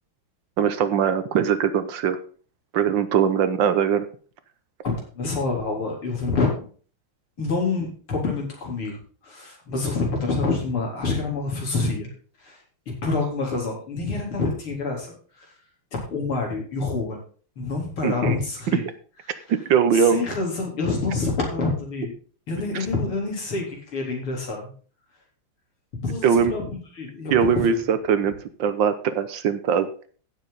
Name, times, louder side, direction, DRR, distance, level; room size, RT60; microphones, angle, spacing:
voice 1, 0.6-2.2 2.7-4.1 18.0-18.4 18.7-18.9 19.5-20.3 22.7-22.9 26.2-26.5 27.3-29.9, right 7 dB, 65° right, 12 dB, 1.5 m, -21 dB
voice 2, 4.8-6.5 7.4-9.0 9.2-12.1 12.4-12.6 12.9-15.5 16.1-17.2 17.6-18.8 19.9-22.1 22.5-24.7 26.0-27.8, left 3 dB, 80° left, -1 dB, 4.8 m, -27 dB
15.5 x 7.2 x 4.1 m, 0.41 s
omnidirectional pair, 2.3 m